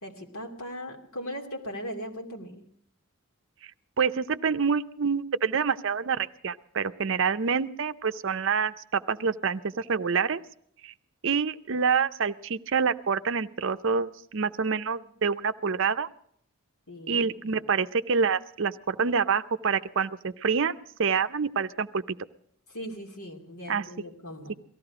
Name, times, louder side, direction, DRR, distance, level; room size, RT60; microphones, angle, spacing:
voice 1, 0.0-2.6 16.9-17.6 22.7-24.5, equal, 75° left, 1 dB, 2.8 m, -39 dB
voice 2, 4.0-10.4 10.8-10.9 11.2-16.1 17.1-22.0 23.7-23.8, right 5 dB, 60° right, 12 dB, 0.6 m, -27 dB
18.0 x 14.5 x 4.9 m, 0.63 s
head